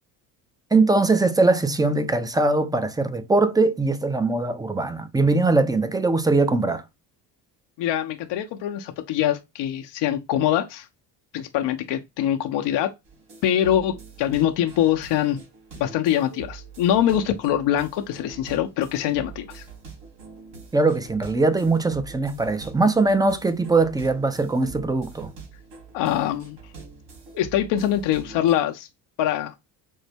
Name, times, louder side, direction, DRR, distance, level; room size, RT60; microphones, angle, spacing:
voice 1, 0.7-6.8 20.7-25.3, right 3 dB, 10° right, 0.6 m, -21 dB
voice 2, 7.8-10.9 11.3-12.9 13.4-15.4 15.8-19.6 25.9-26.6 27.4-28.9 29.2-29.5, left 11 dB, 60° left, 0.6 m, -23 dB
sound 1, 13.1-28.6, right 5 dB, 70° right, 2.5 m, -44 dB
5.2 x 2.1 x 3.3 m
supercardioid pair, 65°, 47 cm